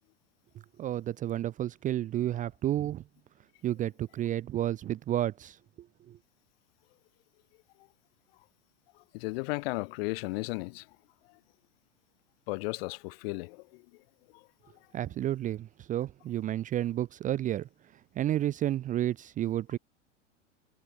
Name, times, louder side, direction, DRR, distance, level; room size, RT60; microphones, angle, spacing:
voice 1, 0.8-3.0 3.6-6.2 14.9-17.7 18.2-19.8, right 12 dB, 20° right, 0.6 m, -31 dB
voice 2, 9.1-10.8 12.5-13.8, left 24 dB, 50° left, 1.5 m, -34 dB
hypercardioid pair, 95°, 37 cm